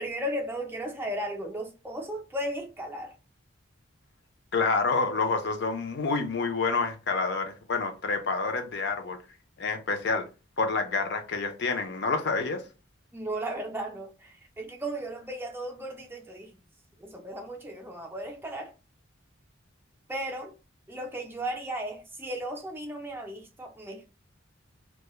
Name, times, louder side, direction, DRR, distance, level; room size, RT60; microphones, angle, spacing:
voice 1, 0.0-3.1 13.1-16.5 17.0-18.7 20.1-20.5 20.9-24.2, right 1 dB, 10° right, 0.4 m, -35 dB
voice 2, 4.5-9.2 9.6-10.2 10.6-12.6, left 4 dB, 55° left, 0.5 m, -28 dB
2.2 x 2.1 x 3.0 m
head